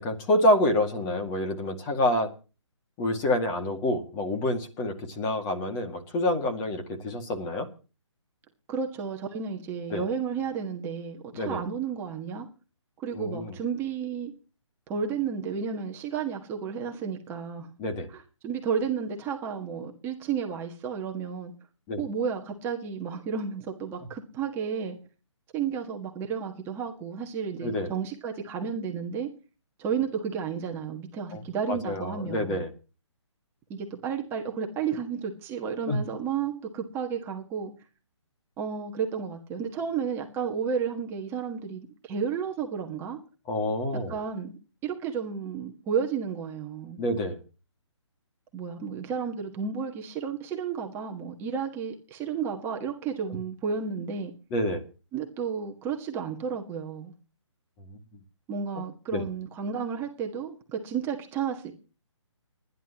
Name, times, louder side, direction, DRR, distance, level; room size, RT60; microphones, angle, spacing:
voice 1, 0.0-2.3 3.0-7.7 9.9-10.0 11.3-11.6 13.1-13.6 17.8-18.1 21.9-22.0 27.6-27.9 31.3-31.4 31.7-32.7 35.9-36.0 43.5-44.2 47.0-47.4 54.5-54.8 57.9-58.0 59.1-59.3, left 1 dB, 20° left, 5 dB, 2.1 m, -27 dB
voice 2, 8.7-12.5 13.0-14.3 14.9-17.7 18.1-21.5 22.0-25.0 25.5-29.3 29.8-32.6 33.7-37.7 38.6-43.2 44.1-47.0 48.5-54.3 55.1-57.1 58.5-61.7, right 6 dB, 15° right, 1 dB, 1.5 m, -32 dB
30.0 x 11.0 x 3.0 m, 0.35 s
hypercardioid pair, 155°, 16 cm